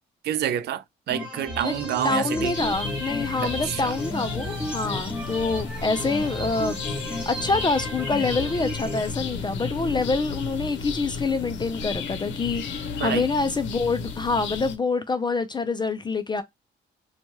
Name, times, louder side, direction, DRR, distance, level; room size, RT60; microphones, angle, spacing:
voice 1, 0.2-2.5 3.4-4.0 13.0-13.2, right 11 dB, 55° right, 0.4 m, -28 dB
sound 1, 1.1-9.1, left 1 dB, 5° right, 1.1 m, -33 dB
voice 2, 2.0-6.8 7.3-12.6 13.0-16.4, left 3 dB, 20° left, 0.4 m, -26 dB
sound 2, 2.5-14.8, left 5 dB, 70° left, 0.7 m, -34 dB
2.9 x 2.3 x 2.9 m
cardioid pair, 90°, 20 cm